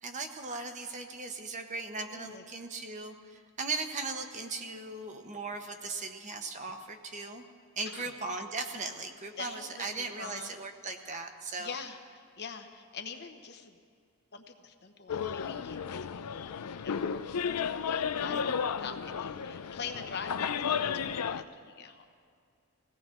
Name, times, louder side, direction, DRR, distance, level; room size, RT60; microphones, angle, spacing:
voice 1, 0.0-7.4 7.8-11.7 18.3-18.4, right 3 dB, 35° right, 5 dB, 0.9 m, -38 dB
voice 2, 2.1-2.4 7.9-8.1 9.4-10.6 11.6-13.8 14.3-22.1, left 5 dB, 50° left, 6 dB, 0.9 m, -44 dB
sound 1, 15.1-21.4, left 7 dB, 85° left, 0.5 m, -33 dB
21.0 x 16.5 x 3.8 m, 2.3 s
head